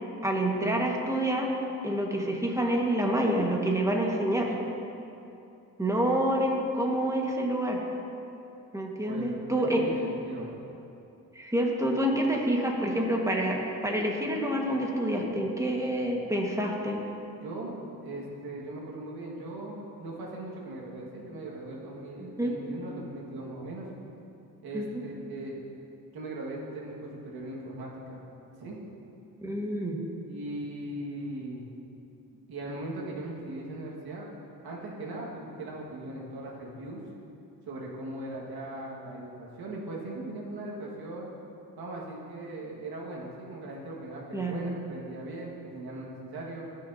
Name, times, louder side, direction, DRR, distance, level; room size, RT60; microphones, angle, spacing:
voice 1, 0.2-1.5 1.8-4.5 5.8-7.8 8.7-9.8 11.3-17.0 22.2-22.5 24.7-25.0 29.4-30.0 44.3-44.6, right 1 dB, 10° right, -1 dB, 1.6 m, -27 dB
voice 2, 9.6-10.5 17.4-23.9 24.6-25.6 26.1-28.2 28.6-28.8 30.3-31.7 32.5-34.3 34.6-37.0 37.7-41.3 41.8-46.7, right 2 dB, 80° right, -3 dB, 1.9 m, -39 dB
15.5 x 6.4 x 2.8 m, 2.7 s
cardioid pair, 65°, 37 cm